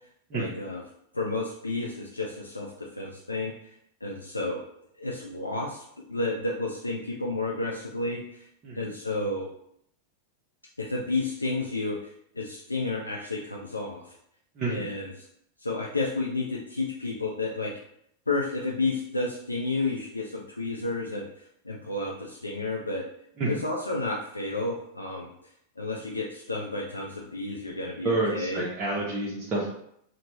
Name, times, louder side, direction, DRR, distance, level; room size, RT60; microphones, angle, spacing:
voice 1, 0.3-0.8 1.1-3.7 4.0-4.6 5.0-8.5 8.7-9.5 10.8-14.2 14.7-15.3 15.6-17.7 18.3-23.0 23.5-25.3 25.8-28.6, left 2 dB, 80° left, -2 dB, 0.3 m, -31 dB
voice 2, 28.0-29.7, right 2 dB, 30° right, -6 dB, 0.6 m, -28 dB
3.0 x 2.1 x 3.0 m, 0.71 s
figure-of-eight pair, 90°, 0 cm